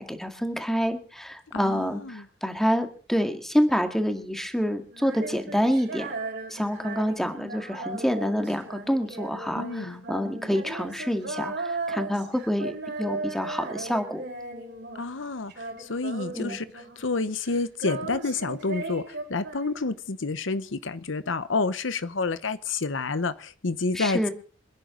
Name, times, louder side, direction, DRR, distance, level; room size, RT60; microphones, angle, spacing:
voice 1, 0.0-6.1 6.5-14.2 16.3-16.6 24.0-24.3, equal, ahead, 2.0 m, -27 dB
voice 2, 1.5-2.3 9.5-10.0 14.9-24.3, left 3 dB, 75° left, 0.9 m, -29 dB
Female singing, 4.9-15.2 15.5-17.2 17.4-20.1, right 3 dB, 60° right, 4.9 m, -37 dB
27.0 x 10.5 x 3.9 m
head